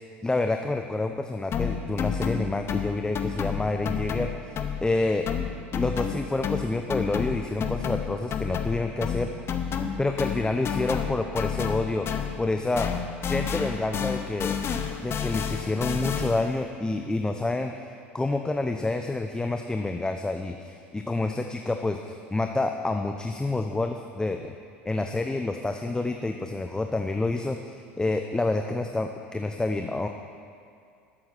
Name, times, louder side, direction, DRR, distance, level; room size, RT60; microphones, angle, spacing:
voice 1, 0.2-5.3 5.7-9.3 10.0-12.9 13.2-14.6 15.0-17.7 18.1-24.5 24.8-30.1, left 2 dB, 10° left, 5 dB, 0.7 m, -28 dB
sound 1, 1.5-5.0 5.3-12.5 12.8-16.5, left 7 dB, 40° left, 1.0 m, -30 dB
12.5 x 7.7 x 6.1 m, 2.3 s
hypercardioid pair, 75°, 6 cm